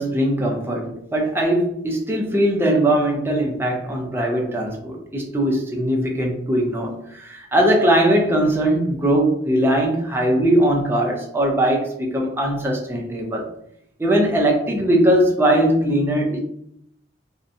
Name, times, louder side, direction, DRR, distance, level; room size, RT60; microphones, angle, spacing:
voice 1, 0.0-13.5 14.0-16.4, right 1 dB, 10° right, 0 dB, 0.4 m, -20 dB
2.6 x 2.1 x 2.5 m, 0.74 s
head